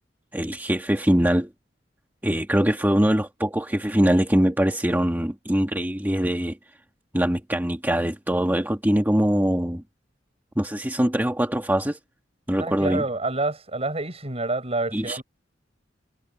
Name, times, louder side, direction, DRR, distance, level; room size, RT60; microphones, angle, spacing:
voice 1, 0.3-1.5 2.2-6.6 7.1-9.8 10.5-12.0 12.5-13.0 14.9-15.2, equal, 10° right, 1.8 m, -22 dB
voice 2, 12.6-15.2, right 2 dB, 35° right, 7.7 m, -28 dB
head